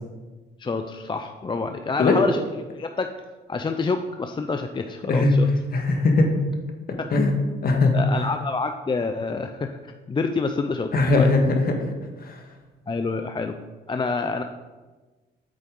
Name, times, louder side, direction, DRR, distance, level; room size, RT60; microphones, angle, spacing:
voice 1, 0.6-2.4 2.7-3.1 3.5-5.5 7.9-11.3 12.9-13.6 13.9-14.4, left 4 dB, 25° left, 6 dB, 0.5 m, -27 dB
voice 2, 5.7-6.3 7.1-7.3 7.6-8.0 10.9-11.8 12.2-12.4, left 3 dB, 50° left, 3 dB, 1.6 m, -20 dB
8.5 x 7.6 x 3.8 m, 1.3 s
cardioid pair, 90°, 20 cm